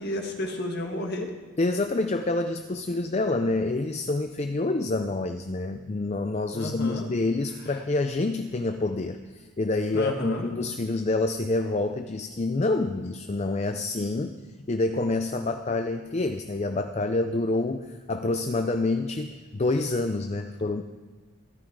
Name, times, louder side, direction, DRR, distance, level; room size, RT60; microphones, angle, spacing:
voice 1, 0.0-1.3 6.5-7.1 9.9-10.5, left 1 dB, 50° left, 3 dB, 1.6 m, -31 dB
voice 2, 1.6-14.4 14.7-20.8, left 2 dB, 30° left, 8 dB, 0.4 m, -27 dB
14.0 x 12.5 x 4.8 m, 1.4 s
head